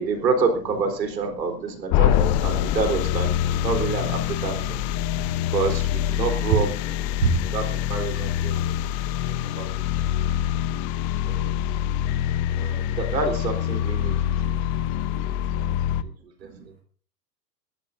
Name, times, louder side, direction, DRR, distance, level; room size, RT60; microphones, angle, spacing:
voice 1, 0.0-3.3 3.6-4.8 5.5-6.7 7.2-8.7 9.6-9.7 11.2-11.5 12.6-14.1 14.4-14.9 15.1-15.3 15.6-15.8 16.4-16.7, right 4 dB, 80° right, 5 dB, 4.0 m, -27 dB
voice 2, 1.1-2.8 3.2-5.6 6.3-6.8 16.4-16.8, right 7 dB, 50° right, 2 dB, 2.9 m, -34 dB
sound 1, 1.9-16.0, left 11 dB, 35° left, 0.9 m, -25 dB
22.0 x 13.5 x 2.7 m, 0.41 s
hypercardioid pair, 100°, 50 cm